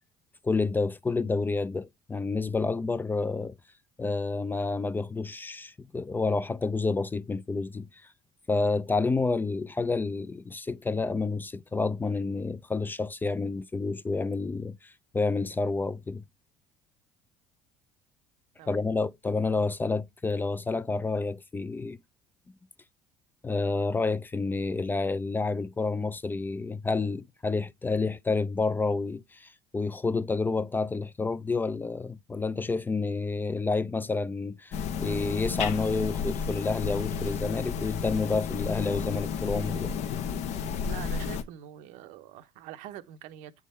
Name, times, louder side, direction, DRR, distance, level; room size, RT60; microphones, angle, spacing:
voice 1, 0.4-3.6 4.0-8.1 8.5-16.2 18.7-22.0 23.4-39.9, left 3 dB, 15° left, 0.3 m, -29 dB
sound 1, 34.7-41.4, left 6 dB, 65° left, 0.7 m, -32 dB
voice 2, 40.8-43.5, right 12 dB, 80° right, 0.8 m, -44 dB
8.3 x 3.6 x 4.2 m
supercardioid pair, 100°, 13 cm